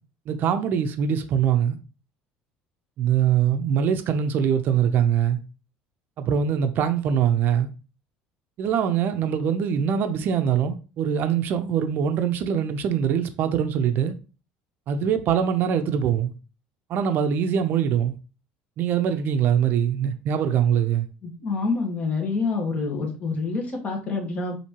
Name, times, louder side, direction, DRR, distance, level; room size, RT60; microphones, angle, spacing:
voice 1, 0.3-1.8 3.0-5.4 6.2-7.7 8.6-14.1 14.9-16.3 16.9-18.1 18.8-21.1, right 8 dB, 55° right, 0.6 m, -23 dB
voice 2, 21.2-24.6, left 4 dB, 35° left, 1.4 m, -27 dB
4.4 x 2.8 x 2.9 m
supercardioid pair, 105°, 4 cm